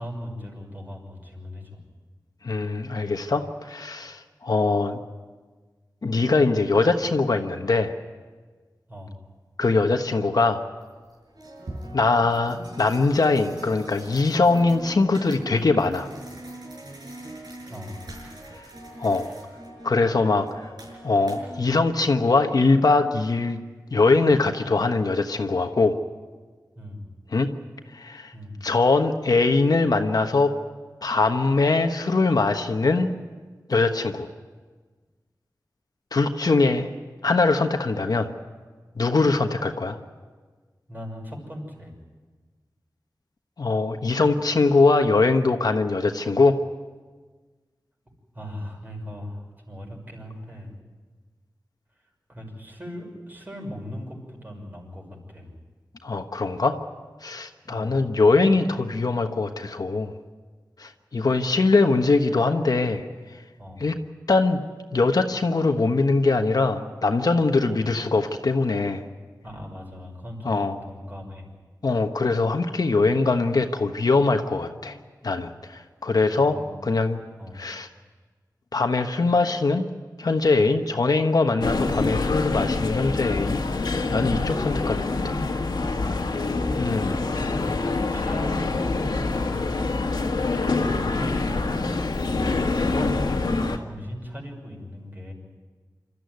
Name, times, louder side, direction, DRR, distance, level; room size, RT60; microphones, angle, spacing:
voice 1, 0.0-1.8 8.9-9.2 17.7-18.0 26.7-27.1 28.3-28.6 40.9-41.9 48.3-50.7 52.3-55.5 57.7-58.1 63.6-63.9 67.7-67.8 69.4-71.5 76.3-76.8 77.4-77.6 85.9-87.8 88.1-89.9 90.5-91.7 92.2-95.3, left 1 dB, 25° right, 0 dB, 6.3 m, -39 dB
voice 2, 2.4-5.0 6.0-7.9 9.6-10.6 11.9-16.1 19.0-19.3 19.8-20.7 21.0-23.6 23.9-26.0 27.3-27.5 27.9-28.3 28.6-30.5 31.0-33.1 33.7-34.3 36.1-36.9 37.2-38.3 39.0-40.0 43.6-46.6 56.0-56.8 57.2-60.1 60.8-63.1 63.8-63.9 64.3-64.6 64.9-69.0 70.4-70.7 71.8-75.0 75.2-77.2 77.6-77.9 78.7-79.8 80.2-83.6 84.1-85.2 86.8-87.1, left 3 dB, 65° left, 5 dB, 1.3 m, -22 dB
sound 1, 10.0-10.1 10.8-21.7, right 1 dB, 75° right, 7.2 m, -41 dB
sound 2, 81.6-93.8, left 3 dB, 80° left, 1.8 m, -25 dB
27.0 x 14.0 x 9.5 m, 1.4 s
wide cardioid pair, 90°, 7 cm